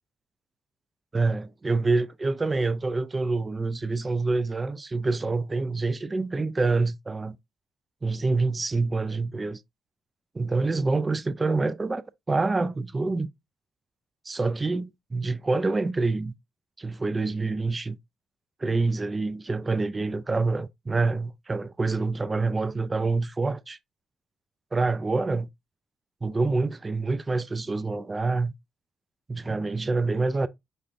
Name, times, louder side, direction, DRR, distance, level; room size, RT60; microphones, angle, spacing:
voice 1, 1.1-7.4 8.0-9.6 10.3-13.3 14.3-16.3 16.8-18.0 18.6-23.8 24.7-25.5 26.2-28.5 29.3-30.5, right 3 dB, 20° right, 0.3 m, -26 dB
5.2 x 3.3 x 2.5 m
cardioid pair, 135°, 0 cm